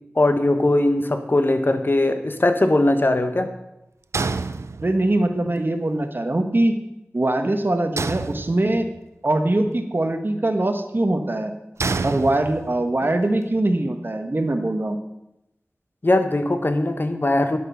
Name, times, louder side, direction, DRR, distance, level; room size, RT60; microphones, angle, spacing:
voice 1, 0.1-3.5 16.0-17.6, left 2 dB, 45° left, 7 dB, 1.3 m, -20 dB
sound 1, 4.1-5.2 8.0-9.0 11.8-12.9, right 4 dB, 75° right, 0.5 m, -28 dB
voice 2, 4.8-6.7 7.1-8.9 9.2-11.5 12.0-15.0, right 1 dB, 45° right, 7 dB, 1.3 m, -22 dB
10.5 x 8.5 x 5.6 m, 0.89 s
wide cardioid pair, 45°, 5 cm